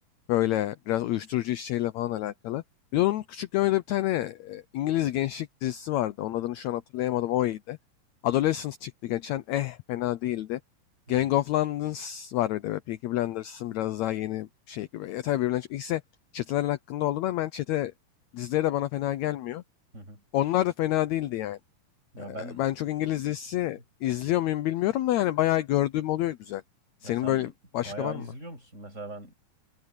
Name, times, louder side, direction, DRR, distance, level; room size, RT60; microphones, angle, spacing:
voice 1, 0.3-2.6 2.9-7.8 8.2-10.6 11.1-16.0 16.3-17.9 18.3-19.6 20.3-21.6 22.2-26.6 27.0-28.3, left 14 dB, 75° left, 1.7 m, -28 dB
voice 2, 22.1-22.6 27.0-27.5 27.8-29.3, right 2 dB, 20° right, 7.5 m, -40 dB
omnidirectional pair, 3.9 m